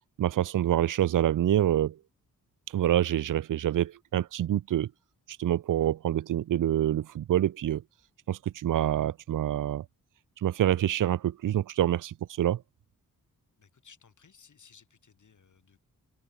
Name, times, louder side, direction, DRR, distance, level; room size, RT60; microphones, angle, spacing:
voice 1, 0.2-2.0 2.7-4.9 5.4-7.8 8.3-9.8 10.4-12.6, right 12 dB, 60° right, 0.6 m, -26 dB
voice 2, 13.6-15.8, left 6 dB, 55° left, 3.8 m, -58 dB
open air
cardioid pair, 60°, 36 cm